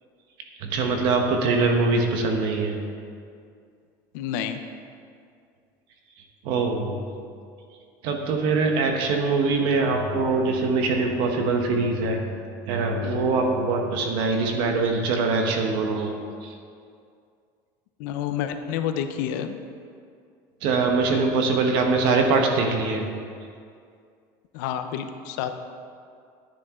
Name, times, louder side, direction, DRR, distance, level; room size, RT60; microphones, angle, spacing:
voice 1, 0.6-2.8 6.4-7.0 8.0-12.2 12.7-16.1 16.4-16.5 20.6-23.1, right 3 dB, 50° right, 3 dB, 1.2 m, -23 dB
voice 2, 4.1-4.6 18.0-19.6 24.5-25.5, left 9 dB, 75° left, 8 dB, 0.7 m, -29 dB
10.0 x 9.6 x 3.7 m, 2.3 s
cardioid pair, 170°, 10 cm